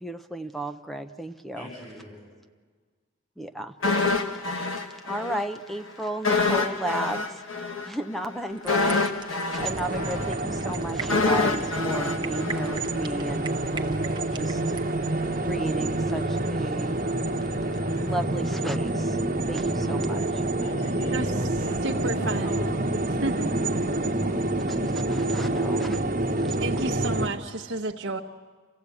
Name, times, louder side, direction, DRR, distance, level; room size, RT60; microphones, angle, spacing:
voice 1, 0.0-1.7 3.4-3.7 4.3-4.8 5.1-7.4 7.8-14.6 15.5-17.0 18.0-19.2 19.5-20.4 24.7-26.0 26.4-26.6, right 1 dB, ahead, 8 dB, 0.6 m, -34 dB
voice 2, 1.5-2.2 20.6-22.8 23.3-24.6, left 1 dB, 40° left, -4 dB, 7.5 m, -41 dB
sound 1, 3.8-5.5 5.7-5.9 6.2-13.3 13.6-13.8, left 3 dB, 80° left, 1.5 m, -27 dB
sound 2, 8.5-14.9, right 6 dB, 20° right, 0.9 m, -41 dB
sound 3, 9.6-27.3, right 2 dB, 40° right, 1.2 m, -27 dB
voice 3, 21.8-22.6 23.1-23.5 26.6-28.2, right 2 dB, 60° right, 0 dB, 1.0 m, -31 dB
27.0 x 16.0 x 8.4 m, 1.5 s
head